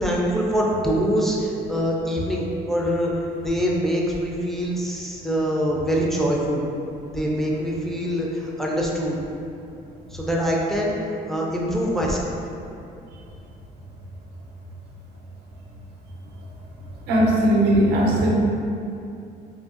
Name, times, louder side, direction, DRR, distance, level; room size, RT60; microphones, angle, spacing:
voice 1, 0.0-3.1 3.4-6.7 7.1-9.2 10.1-10.9 11.3-12.3, equal, ahead, -4 dB, 0.3 m, -24 dB
voice 2, 17.1-18.3, right 1 dB, 80° right, -3 dB, 0.5 m, -18 dB
2.6 x 2.2 x 2.3 m, 2.6 s
cardioid pair, 110°, 17 cm